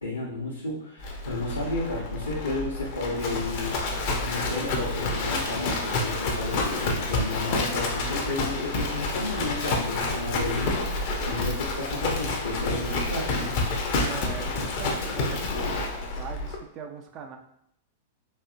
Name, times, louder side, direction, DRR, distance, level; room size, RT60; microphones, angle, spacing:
voice 1, 0.0-13.6, left 2 dB, 85° left, -9 dB, 0.9 m, -32 dB
Livestock farm animals working animals, 1.0-16.6, left 2 dB, 45° left, 0.7 m, -29 dB
voice 2, 14.0-15.8 16.1-17.4, right 6 dB, 35° right, 4 dB, 0.5 m, -41 dB
4.2 x 2.7 x 2.5 m, 0.70 s
figure-of-eight pair, 100°, 0 cm